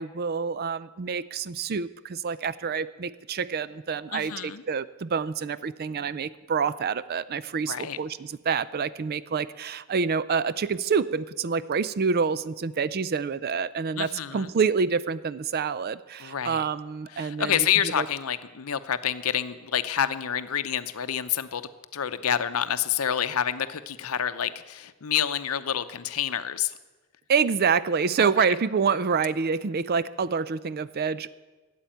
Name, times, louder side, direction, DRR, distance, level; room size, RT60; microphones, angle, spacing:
voice 1, 0.0-17.7 18.0-18.1 27.3-31.4, right 5 dB, 45° right, 17 dB, 0.4 m, -27 dB
voice 2, 4.1-4.6 7.7-8.0 13.9-14.5 16.2-16.6 17.1-21.6 21.9-26.7 28.2-28.3, left 9 dB, 75° left, 12 dB, 0.7 m, -28 dB
13.0 x 8.3 x 9.0 m, 1.2 s
head